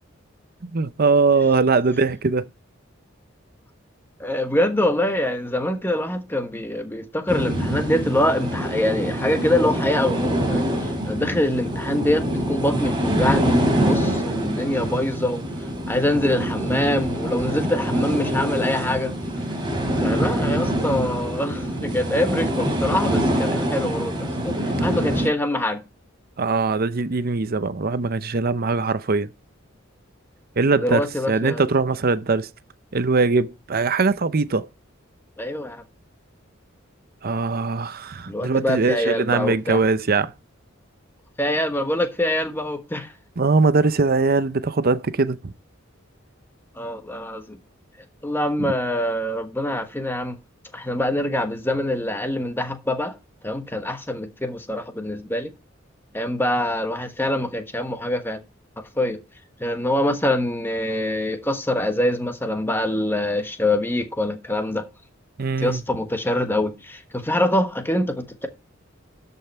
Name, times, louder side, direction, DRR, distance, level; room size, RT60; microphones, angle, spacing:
voice 1, 0.6-2.4 26.4-29.3 30.6-32.5 32.9-34.7 37.2-40.3 43.4-45.5 48.6-48.7 65.4-65.8, right 4 dB, 45° right, 0.6 m, -21 dB
voice 2, 4.2-15.4 15.9-19.1 20.0-25.8 30.7-31.6 35.4-35.8 38.3-39.8 41.4-43.1 46.8-47.6 48.2-50.4 50.7-53.1 53.4-55.5 56.1-58.4 59.0-59.2 59.6-64.9 65.6-68.5, left 1 dB, 10° left, 1.3 m, -24 dB
sound 1, 7.3-25.3, equal, 25° right, 3.9 m, -25 dB
12.5 x 5.5 x 4.4 m
head